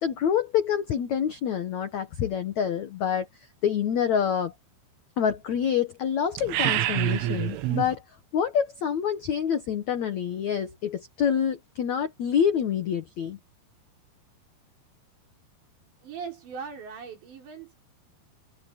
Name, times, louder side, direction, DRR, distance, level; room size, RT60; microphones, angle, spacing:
voice 1, 0.0-4.5 5.2-8.0 8.3-13.4, left 8 dB, 85° left, 1.6 m, -27 dB
sound 1, 6.4-8.0, right 14 dB, 80° right, 3.9 m, -26 dB
voice 2, 16.0-17.8, right 6 dB, 65° right, 8.1 m, -39 dB
omnidirectional pair, 5.4 m